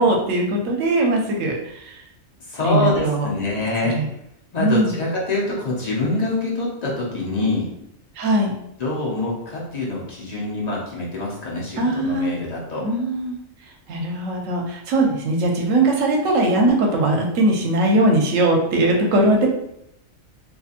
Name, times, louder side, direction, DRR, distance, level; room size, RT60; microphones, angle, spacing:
voice 1, 0.0-2.0 2.6-3.3 3.9-4.1 4.6-4.9 8.2-8.5 11.8-12.3 12.8-13.4 13.9-19.5, right 2 dB, 80° right, 1 dB, 1.0 m, -20 dB
voice 2, 2.5-4.0 4.5-7.7 8.8-12.8, left 2 dB, 40° left, -5 dB, 0.6 m, -25 dB
2.7 x 2.6 x 2.4 m, 0.78 s
omnidirectional pair, 1.3 m